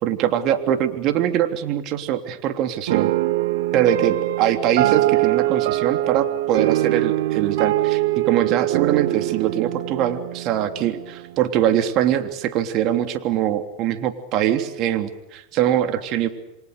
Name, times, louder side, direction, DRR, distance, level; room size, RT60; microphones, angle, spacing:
voice 1, 0.0-3.1 3.7-16.3, right 11 dB, 50° right, 7 dB, 3.2 m, -22 dB
sound 1, 2.9-11.4, right 16 dB, 75° right, 1.2 m, -23 dB
29.0 x 24.5 x 6.8 m, 0.90 s
hypercardioid pair, 105°, 0 cm